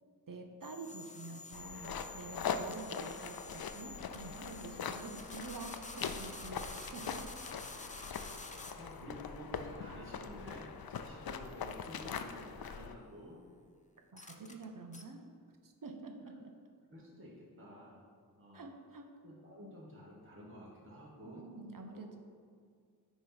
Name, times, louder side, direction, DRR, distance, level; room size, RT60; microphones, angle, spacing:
voice 1, 0.3-7.3 14.1-15.3 15.6-16.5 18.5-19.1 21.2-22.2, right 3 dB, 65° right, 3 dB, 0.8 m, -48 dB
sound 1, 0.6-9.0 11.4-11.8 14.2-14.6 14.9-15.0, left 3 dB, 20° left, 0.5 m, -50 dB
sound 2, 1.5-13.0, left 6 dB, 75° left, 0.5 m, -42 dB
voice 2, 7.9-13.4 16.9-18.1 18.4-18.7 19.2-21.4 21.9-22.2, equal, 35° right, -5 dB, 1.3 m, -52 dB
9.2 x 3.1 x 5.7 m, 2.1 s
wide cardioid pair, 80°, 36 cm